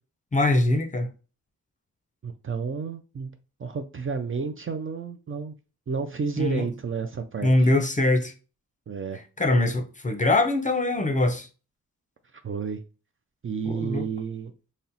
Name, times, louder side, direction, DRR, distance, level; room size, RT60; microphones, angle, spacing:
voice 1, 0.3-1.1 6.4-6.6 7.4-8.3 9.4-11.5 13.7-14.1, left 2 dB, 25° left, 0.5 m, -22 dB
voice 2, 2.2-3.3 3.6-5.5 5.9-7.7 8.9-9.2 12.3-12.8 13.4-14.5, right 5 dB, 40° right, 0.4 m, -31 dB
4.2 x 2.0 x 3.9 m
wide cardioid pair, 140°, 34 cm